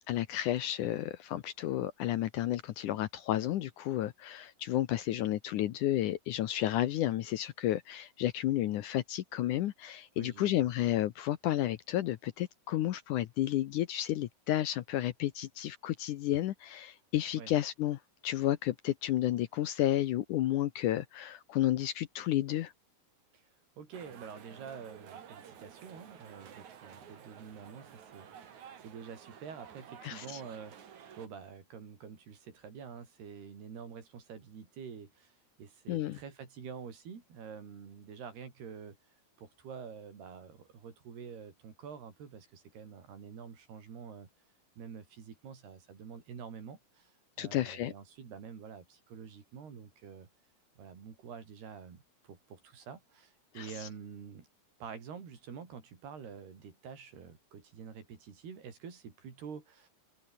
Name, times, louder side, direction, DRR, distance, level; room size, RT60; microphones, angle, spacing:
voice 1, 0.1-22.7 30.0-30.4 35.9-36.2 47.4-47.9 53.6-53.9, left 13 dB, 75° left, 1.9 m, -32 dB
voice 2, 10.2-10.7 17.4-17.5 23.3-23.5 23.8-35.3 35.6-39.0 39.4-44.3 44.8-50.3 50.8-54.5 54.8-59.9, right 6 dB, 75° right, 6.4 m, -47 dB
sound 1, 23.9-31.3, right 8 dB, 50° right, 3.2 m, -52 dB
omnidirectional pair, 4.7 m